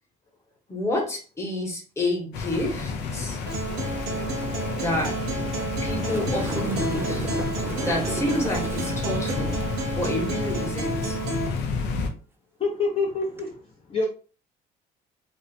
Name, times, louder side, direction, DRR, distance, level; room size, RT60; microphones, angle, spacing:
voice 1, 0.7-3.4 4.8-5.2 5.8-7.3 7.8-9.6 9.9-11.2, left 1 dB, 15° left, 1.0 m, -29 dB
sound 1, 2.3-12.1, left 4 dB, 85° left, 0.5 m, -31 dB
Acoustic guitar, 3.5-11.5, right 3 dB, 85° right, 0.8 m, -31 dB
sound 2, 6.0-9.4 13.2-13.4, right 2 dB, 15° right, 0.4 m, -35 dB
voice 2, 12.6-14.1, left 3 dB, 35° left, 0.6 m, -27 dB
2.6 x 2.1 x 2.7 m
cardioid pair, 110°, 17 cm